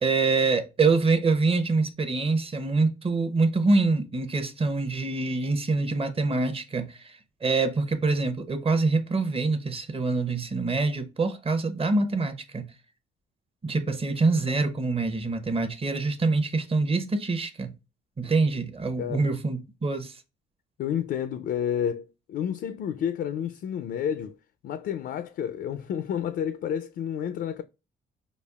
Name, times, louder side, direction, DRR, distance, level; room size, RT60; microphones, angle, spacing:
voice 1, 0.0-12.7 13.6-17.7 18.2-20.2, right 3 dB, 30° right, 0.8 m, -25 dB
voice 2, 20.8-24.4 24.6-27.6, left 9 dB, 60° left, 0.4 m, -30 dB
5.1 x 2.4 x 2.3 m
cardioid pair, 90°, 20 cm